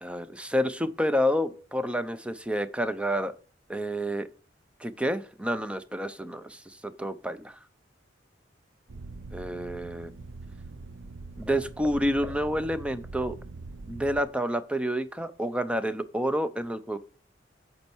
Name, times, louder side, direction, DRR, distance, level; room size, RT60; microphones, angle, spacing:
voice 1, 0.0-3.3 3.7-4.3 4.8-7.6 9.3-10.1 11.4-13.4 13.9-17.0, equal, 5° right, 12 dB, 0.6 m, -29 dB
sound 1, 8.9-14.2, right 3 dB, 70° right, 0.7 m, -43 dB
8.6 x 5.4 x 4.5 m, 0.41 s
head